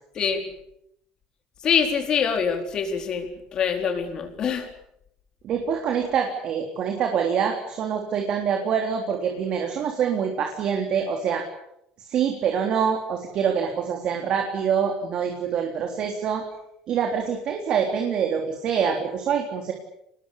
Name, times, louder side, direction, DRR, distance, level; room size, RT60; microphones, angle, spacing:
voice 1, 0.1-0.5 1.6-4.7, left 7 dB, 40° left, 5 dB, 4.3 m, -25 dB
voice 2, 5.4-11.4 12.0-16.4 16.9-19.7, right 7 dB, 45° right, 3 dB, 3.7 m, -25 dB
25.0 x 20.5 x 8.6 m, 0.78 s
cardioid pair, 145°, 2 cm